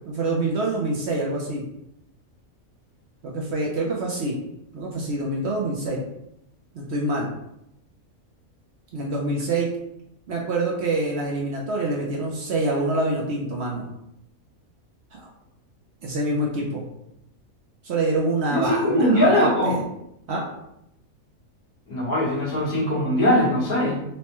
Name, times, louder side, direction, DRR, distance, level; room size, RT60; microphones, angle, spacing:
voice 1, 0.1-1.6 3.2-4.4 4.7-6.0 6.7-7.3 8.9-9.7 10.3-13.8 15.1-15.3 16.0-16.9 17.8-19.8 20.3-20.4, right 2 dB, 60° right, -2 dB, 0.8 m, -26 dB
voice 2, 18.5-19.8 21.9-24.1, equal, 80° left, -6 dB, 1.9 m, -21 dB
4.2 x 2.2 x 2.9 m, 0.80 s
omnidirectional pair, 1.5 m